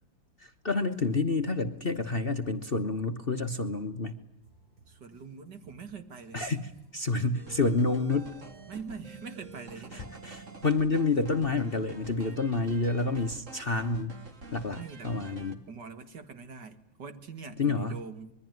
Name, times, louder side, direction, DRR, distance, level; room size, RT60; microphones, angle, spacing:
voice 1, 0.4-4.2 6.3-8.4 9.9-14.2 14.5-15.6 17.6-18.0, left 3 dB, 35° left, 6 dB, 1.1 m, -29 dB
Drum kit, 4.4-9.9, right 4 dB, 90° right, 6.2 m, -61 dB
voice 2, 4.9-6.4 8.7-10.2 14.8-15.1 15.7-18.3, right 5 dB, 60° right, 9 dB, 2.5 m, -43 dB
sound 1, 7.3-15.6, right 3 dB, 40° right, 2.5 m, -47 dB
26.0 x 22.5 x 9.4 m, 0.80 s
omnidirectional pair, 2.1 m